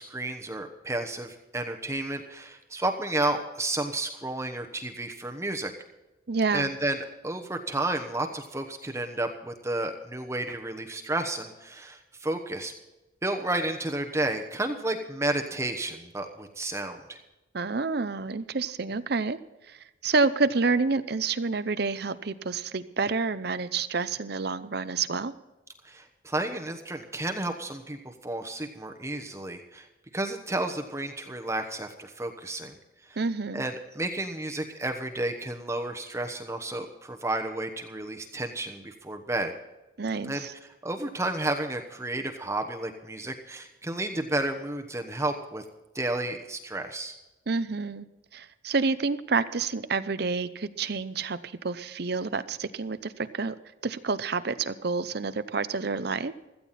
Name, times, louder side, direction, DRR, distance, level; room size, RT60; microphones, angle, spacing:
voice 1, 0.0-5.7 6.5-12.7 13.2-17.2 25.8-29.9 30.1-32.8 33.1-33.2 33.5-39.5 40.2-40.5 40.8-45.6 45.9-47.1, right 2 dB, 15° right, 4 dB, 1.1 m, -32 dB
voice 2, 6.3-6.7 17.5-19.4 19.7-19.8 20.0-25.3 33.2-33.6 40.0-40.5 47.5-48.1 48.3-53.6 53.8-56.4, right 4 dB, 55° right, 13 dB, 0.7 m, -28 dB
16.5 x 14.0 x 4.3 m, 1.0 s
head